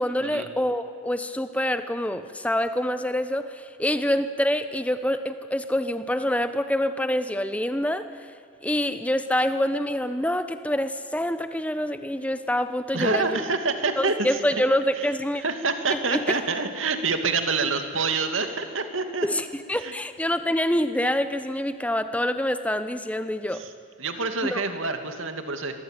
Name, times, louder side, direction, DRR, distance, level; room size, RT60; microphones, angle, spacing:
voice 1, 0.0-8.1 8.6-13.4 14.0-15.4 15.9-16.3 19.2-23.6 24.4-24.6, left 1 dB, 5° left, 10 dB, 1.0 m, -26 dB
voice 2, 12.9-14.4 15.4-19.3 19.7-19.9 23.5-23.7 24.0-25.7, right 4 dB, 80° right, 6 dB, 2.5 m, -27 dB
26.5 x 22.0 x 9.2 m, 2.3 s
head